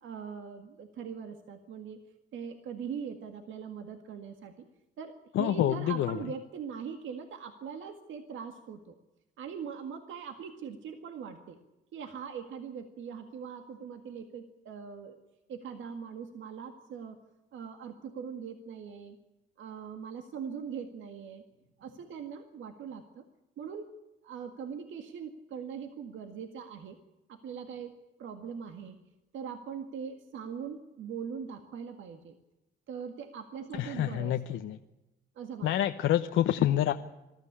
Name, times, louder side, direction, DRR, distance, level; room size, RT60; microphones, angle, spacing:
voice 1, 0.0-2.1 2.3-4.7 5.0-9.0 9.4-11.6 11.9-15.2 15.5-17.2 17.5-19.2 19.6-21.4 21.8-23.2 23.6-23.9 24.2-27.0 27.3-27.9 28.2-29.0 29.3-32.3 32.9-34.6 35.4-35.9, right 7 dB, 75° right, 6 dB, 1.9 m, -41 dB
voice 2, 5.3-6.2 33.8-34.8 35.6-36.9, left 12 dB, 80° left, 7 dB, 1.0 m, -27 dB
21.5 x 13.5 x 9.8 m, 0.99 s
cardioid pair, 90°, 20 cm